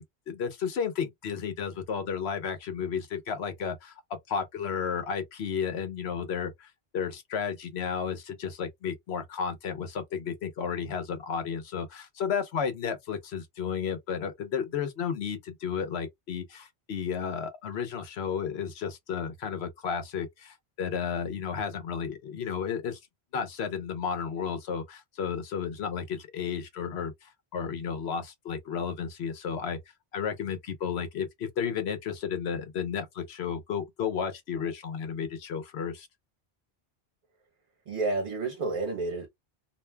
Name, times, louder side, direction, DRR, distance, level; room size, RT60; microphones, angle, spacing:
voice 1, 0.0-23.0 23.3-29.8 30.1-36.1, left 7 dB, 85° left, 1.0 m, -33 dB
voice 2, 37.9-39.3, right 3 dB, 55° right, 0.9 m, -30 dB
2.5 x 2.2 x 3.2 m
omnidirectional pair, 1.1 m